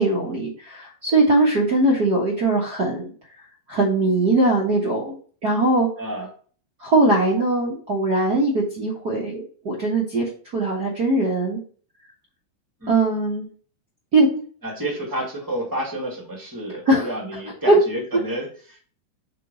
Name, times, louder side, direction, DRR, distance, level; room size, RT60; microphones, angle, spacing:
voice 1, 0.0-3.1 3.7-5.1 5.4-5.9 6.8-11.6 12.9-13.5 14.1-14.4 16.9-17.1 17.7-17.8, right 2 dB, 55° right, -4 dB, 1.1 m, -20 dB
voice 2, 6.0-6.3 12.8-12.9 14.6-18.8, right 1 dB, 10° right, -1 dB, 0.9 m, -30 dB
5.6 x 4.1 x 5.3 m, 0.43 s
omnidirectional pair, 3.9 m